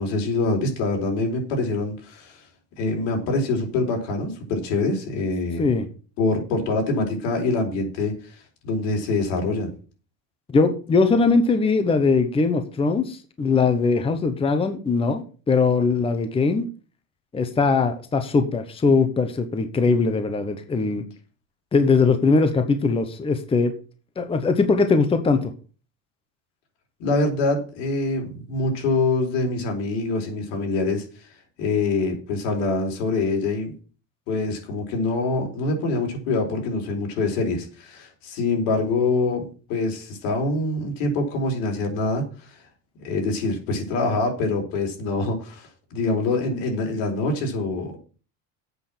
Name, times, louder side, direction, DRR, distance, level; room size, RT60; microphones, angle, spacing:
voice 1, 0.0-2.5 2.8-5.7 6.2-9.7 27.0-31.3 31.6-33.7 34.3-42.6 43.0-48.0, left 3 dB, 80° left, 2 dB, 4.3 m, -25 dB
voice 2, 10.5-16.7 17.3-21.0 21.7-23.7 24.2-25.5, left 4 dB, 15° left, 8 dB, 0.9 m, -21 dB
8.2 x 6.0 x 7.4 m, 0.38 s
cardioid pair, 140°, 37 cm